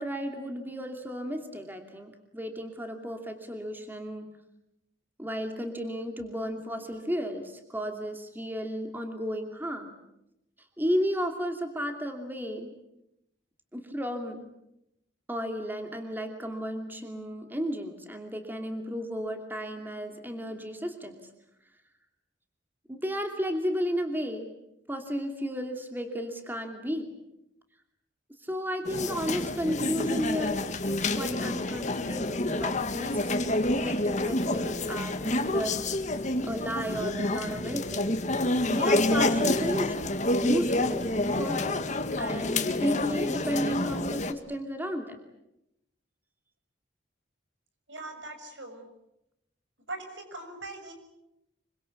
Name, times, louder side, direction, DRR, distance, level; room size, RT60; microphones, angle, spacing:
voice 1, 0.0-4.3 5.2-10.0 10.8-12.8 13.7-14.5 15.3-21.2 22.9-24.5 24.9-27.1 28.4-35.8 36.4-38.1 38.7-41.8 42.2-45.2, equal, 10° right, 5 dB, 2.7 m, -33 dB
sound 1, 28.9-44.3, left 2 dB, 40° left, 1.8 m, -28 dB
voice 2, 47.9-48.9 49.9-50.9, right 2 dB, 75° right, 6 dB, 6.9 m, -40 dB
26.0 x 24.0 x 8.5 m, 0.84 s
head